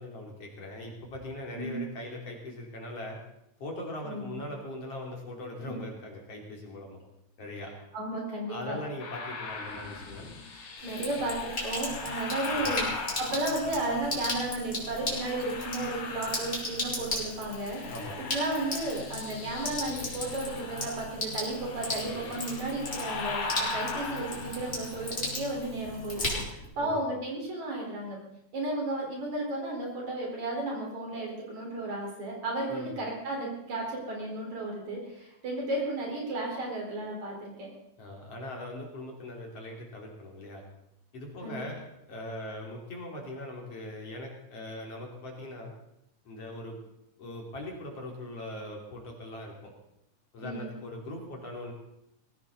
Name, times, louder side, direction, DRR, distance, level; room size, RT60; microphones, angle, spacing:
voice 1, 0.0-3.2 3.6-7.0 7.4-7.7 8.5-10.4 12.5-12.8 17.9-18.2 26.8-27.0 32.7-32.9 38.0-40.6 41.1-45.7 46.3-46.8 47.2-49.7 50.3-51.7, left 1 dB, 50° left, 0 dB, 3.8 m, -40 dB
voice 2, 4.0-4.4 7.9-8.8 10.5-12.9 13.2-17.8 18.2-26.4 26.8-28.2 28.5-37.7 41.4-41.6 50.4-50.7, right 2 dB, 65° right, -1 dB, 5.8 m, -33 dB
sound 1, 9.0-14.3 14.9-17.1 17.3-26.4, left 3 dB, 70° left, 3.6 m, -39 dB
Sink (filling or washing), 10.8-26.7, left 1 dB, 20° left, 4.1 m, -36 dB
20.0 x 16.0 x 4.1 m, 0.79 s
omnidirectional pair, 3.6 m